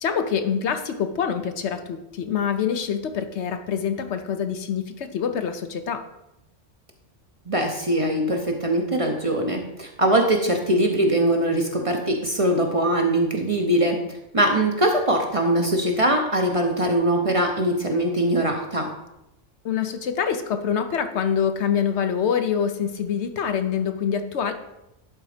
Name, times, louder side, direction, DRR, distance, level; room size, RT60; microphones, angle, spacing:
voice 1, 0.0-6.0 19.6-24.5, left 7 dB, 65° left, 8 dB, 1.0 m, -25 dB
voice 2, 7.5-14.0 14.3-18.9, right 1 dB, 30° right, 3 dB, 0.8 m, -22 dB
11.0 x 4.0 x 4.9 m, 0.89 s
omnidirectional pair, 1.3 m